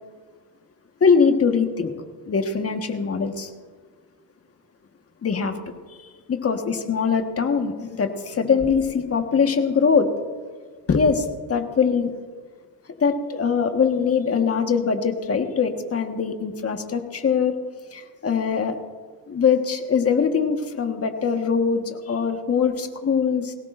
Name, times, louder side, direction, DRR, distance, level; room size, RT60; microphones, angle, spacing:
voice 1, 1.0-1.9 2.3-3.5 5.2-5.5 6.3-10.1 10.9-12.1 13.0-17.5 17.9-18.8 19.3-23.5, left 6 dB, 30° left, 5 dB, 1.5 m, -22 dB
21.0 x 18.0 x 2.6 m, 1.5 s
cardioid pair, 115°, 45 cm